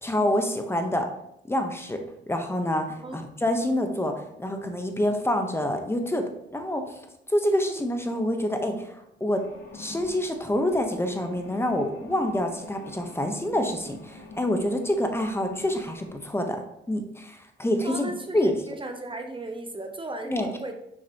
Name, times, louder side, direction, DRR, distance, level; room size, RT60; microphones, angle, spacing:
voice 1, 0.0-1.1 1.5-7.0 7.3-9.4 9.7-16.6 16.9-18.5 20.3-20.5, left 1 dB, 10° left, 5 dB, 1.0 m, -27 dB
sound 1, 9.4-16.3, left 1 dB, 60° left, 2.1 m, -46 dB
voice 2, 17.8-20.7, right 2 dB, 25° right, 5 dB, 0.8 m, -36 dB
6.5 x 6.3 x 3.0 m, 0.80 s
cardioid pair, 90°, 20 cm